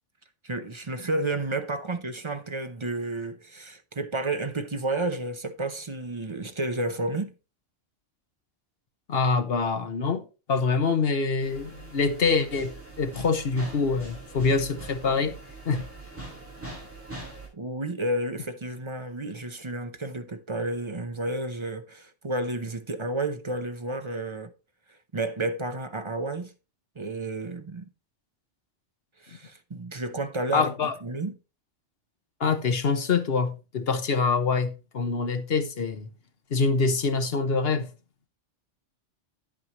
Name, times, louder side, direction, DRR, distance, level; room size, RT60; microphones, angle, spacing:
voice 1, 0.4-7.3 17.5-24.5 25.1-26.5 27.0-27.8 29.2-31.3, right 2 dB, 30° right, 0.6 m, -31 dB
voice 2, 9.1-10.2 10.5-15.4 15.6-15.8 30.5-30.9 32.4-36.1 36.5-37.9, left 4 dB, 55° left, 1.2 m, -25 dB
sound 1, 11.4-17.5, right 2 dB, 10° right, 5.8 m, -42 dB
9.6 x 8.7 x 3.0 m
omnidirectional pair, 1.2 m